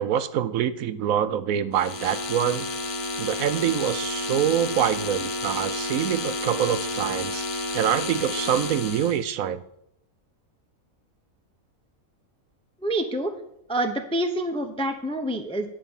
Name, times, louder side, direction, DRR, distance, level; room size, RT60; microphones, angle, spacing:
voice 1, 0.0-2.7 3.2-9.6, right 9 dB, 75° right, 13 dB, 1.0 m, -25 dB
sound 1, 1.7-9.2, left 2 dB, 85° left, 1.6 m, -31 dB
voice 2, 12.8-13.3 13.7-15.7, right 1 dB, 5° left, 5 dB, 0.5 m, -27 dB
10.0 x 4.9 x 7.2 m, 0.77 s
omnidirectional pair, 1.5 m